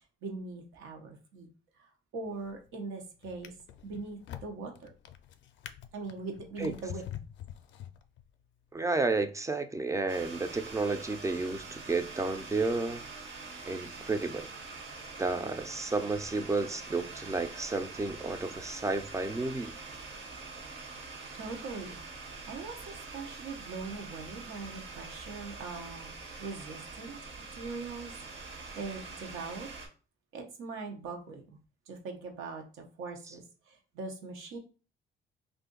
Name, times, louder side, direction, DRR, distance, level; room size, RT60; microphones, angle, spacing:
voice 1, 0.2-1.5 2.1-3.5 3.8-4.9 5.9-7.0 21.3-22.0 22.5-28.2 28.8-29.7 30.3-31.6 31.9-34.6, right 4 dB, 90° right, 0.8 m, -41 dB
Drawer open or close, 2.3-2.7 3.2-8.4 9.1-9.3, left 10 dB, 65° left, 0.4 m, -46 dB
voice 2, 8.7-13.0 13.7-14.5 15.2-19.8, right 3 dB, 15° right, 0.4 m, -32 dB
sound 1, 10.1-29.9, right 4 dB, 65° right, 1.0 m, -45 dB
2.6 x 2.5 x 3.7 m
cardioid pair, 90°, 20 cm